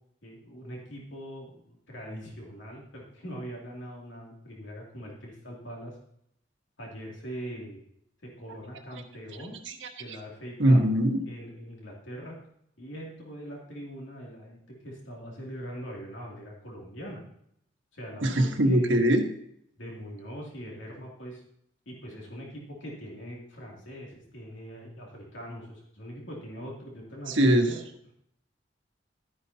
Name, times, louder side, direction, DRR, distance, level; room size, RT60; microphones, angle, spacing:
voice 1, 0.2-6.0 6.8-7.8 8.2-9.5 10.0-10.8 11.3-12.4 12.8-17.2 17.9-19.0 19.8-21.4 21.9-27.8, equal, 85° left, -2 dB, 2.6 m, -42 dB
voice 2, 10.6-11.3 18.2-19.2 27.3-27.7, right 1 dB, 85° right, 4 dB, 1.4 m, -22 dB
12.5 x 9.8 x 2.8 m, 0.72 s
head